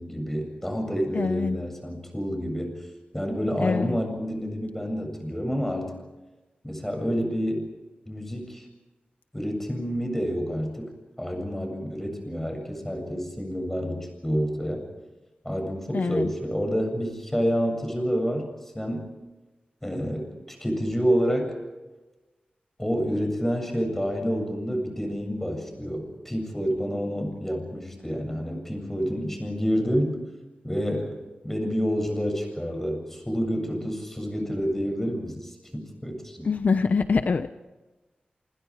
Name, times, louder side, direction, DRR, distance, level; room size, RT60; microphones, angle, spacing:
voice 1, 0.0-2.8 3.1-6.0 6.6-7.7 8.1-8.7 9.3-10.9 11.2-14.8 15.4-18.5 18.7-19.1 19.8-21.5 22.8-30.2 30.6-31.2 31.4-36.5, equal, 10° left, 4 dB, 7.7 m, -28 dB
voice 2, 1.1-1.6 3.6-4.0 15.9-16.3 36.4-37.6, left 4 dB, 60° left, 9 dB, 1.0 m, -25 dB
28.0 x 27.0 x 5.0 m, 1.1 s
wide cardioid pair, 110°, 3 cm